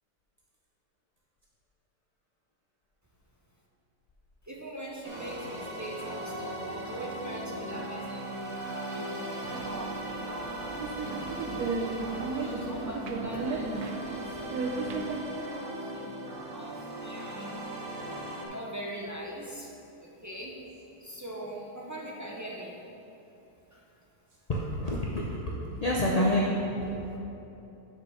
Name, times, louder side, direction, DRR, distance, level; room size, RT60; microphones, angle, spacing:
voice 1, 4.5-8.3 8.7-11.3 11.8-15.7 15.9-16.7 17.0-17.5 18.5-19.7 20.0-20.6 21.0-22.8, right 1 dB, 25° right, -3 dB, 0.3 m, -42 dB
sound 1, 5.0-18.5, right 1 dB, 65° right, 1.7 m, -38 dB
sound 2, 9.4-15.2, right 3 dB, 80° right, 1.1 m, -35 dB
voice 2, 24.5-27.2, equal, 50° left, -4 dB, 0.4 m, -28 dB
6.2 x 5.2 x 6.4 m, 2.9 s
omnidirectional pair, 1.6 m